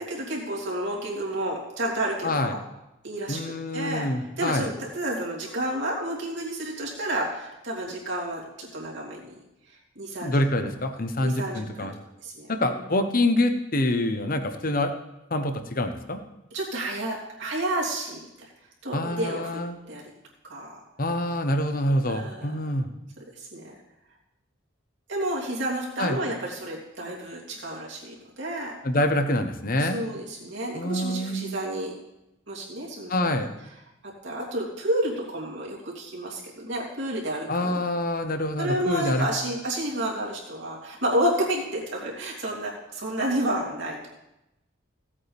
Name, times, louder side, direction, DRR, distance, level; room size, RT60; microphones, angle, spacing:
voice 1, 0.0-2.6 3.0-3.4 3.7-4.1 4.4-9.3 9.7-10.7 11.2-11.9 12.2-12.7 16.5-18.5 18.8-19.6 19.9-20.1 20.4-20.8 22.1-22.5 23.4-23.7 25.1-28.7 29.8-31.9 32.5-33.4 34.0-37.8 38.6-44.1, right 1 dB, 65° right, -3 dB, 3.0 m, -30 dB
voice 2, 2.2-2.6 3.3-4.7 10.2-11.9 12.5-14.9 15.3-16.2 18.9-19.8 21.0-22.9 26.0-26.2 28.8-30.0 30.7-31.6 33.1-33.5 37.5-39.3, left 1 dB, 45° left, 7 dB, 1.0 m, -26 dB
17.0 x 8.5 x 3.5 m, 0.90 s
head